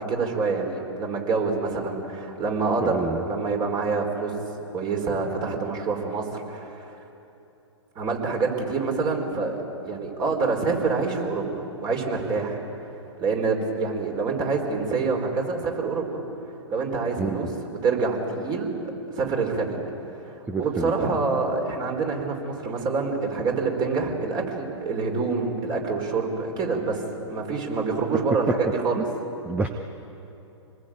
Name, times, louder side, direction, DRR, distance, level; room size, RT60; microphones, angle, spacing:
voice 1, 0.0-4.4 4.7-6.9 7.9-9.6 9.8-12.6 13.2-16.2 16.7-18.7 19.1-19.8 20.2-29.0, right 4 dB, 25° right, 2 dB, 4.7 m, -26 dB
voice 2, 2.8-3.2 17.2-17.5 20.5-20.9 29.0-29.1 29.4-29.7, right 3 dB, 10° right, 6 dB, 1.0 m, -28 dB
26.5 x 20.0 x 9.0 m, 3.0 s
hypercardioid pair, 120°, 16 cm